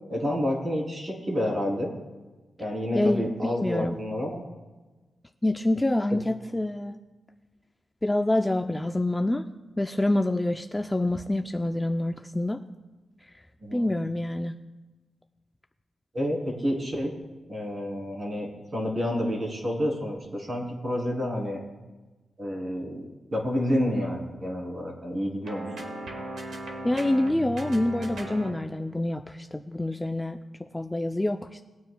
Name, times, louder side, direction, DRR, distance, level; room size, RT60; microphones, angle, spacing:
voice 1, 0.1-1.9 2.6-4.4 6.1-6.2 13.6-13.9 16.1-17.1 17.5-21.6 22.4-25.6, equal, 35° right, -1 dB, 3.1 m, -29 dB
voice 2, 2.9-4.0 5.4-7.0 8.0-9.4 9.8-12.6 13.7-14.5 26.8-31.6, left 1 dB, 10° left, 5 dB, 0.4 m, -27 dB
sound 1, 25.4-28.7, right 1 dB, 85° right, 1.8 m, -37 dB
20.5 x 9.3 x 2.2 m, 1.2 s
wide cardioid pair, 135°, 0 cm